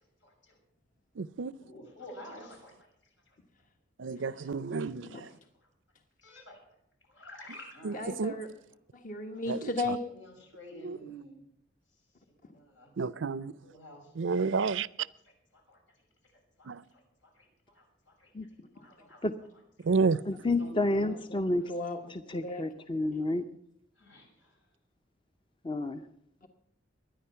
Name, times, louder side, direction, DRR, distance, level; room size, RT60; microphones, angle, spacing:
voice 1, 0.2-0.6 1.6-2.9 3.3-3.4 4.1-4.9 6.2-6.6 7.1-8.0 9.3-9.6 10.1-11.4 12.5-12.9 13.6-14.1 15.2-15.8 16.6-18.3 18.7-19.2 20.5-21.1 24.0-24.6, equal, 80° left, 6.5 m, -50 dB
voice 2, 1.2-1.5 4.0-5.1 7.8-7.9 8.2-8.3 9.5-9.6 10.8-11.0 13.0-13.5 14.2-14.9 16.7-16.8 19.8-20.2, right 4 dB, 80° right, 0.5 m, -29 dB
voice 3, 7.9-8.5 8.9-10.0 21.0-21.4 21.7-22.7, left 2 dB, 45° left, 1.2 m, -36 dB
voice 4, 20.3-21.7 22.1-23.5 25.6-26.1, left 2 dB, 25° left, 0.6 m, -30 dB
22.5 x 10.0 x 5.7 m
head